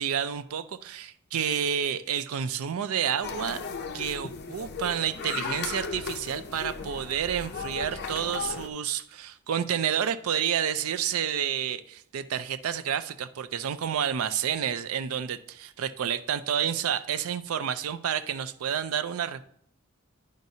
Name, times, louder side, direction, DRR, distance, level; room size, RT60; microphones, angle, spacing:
voice 1, 0.0-3.6 3.9-19.5, right 8 dB, 75° right, 13 dB, 0.4 m, -29 dB
sound 1, 3.2-8.7, left 5 dB, 50° left, 0.5 m, -36 dB
10.5 x 5.1 x 2.7 m, 0.71 s
head